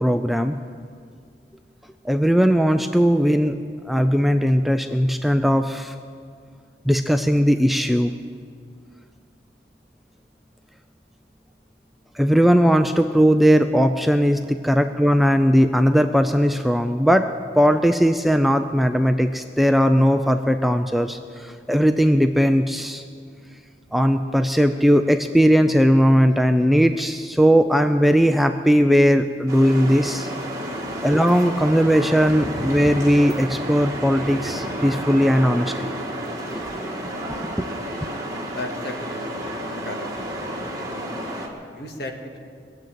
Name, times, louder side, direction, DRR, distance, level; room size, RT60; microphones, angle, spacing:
voice 1, 0.0-0.5 2.1-3.5 3.9-5.9 6.9-8.1 12.2-17.3 17.6-23.0 23.9-30.3 31.0-35.7 36.5-36.9 37.6-37.7, equal, ahead, 7 dB, 0.4 m, -18 dB
sound 1, 29.5-41.5, right 1 dB, 20° right, 1.8 m, -30 dB
voice 2, 38.5-39.3 39.7-40.1 41.7-42.4, left 2 dB, 65° left, 2 dB, 1.9 m, -34 dB
20.0 x 7.8 x 9.1 m, 2.2 s
head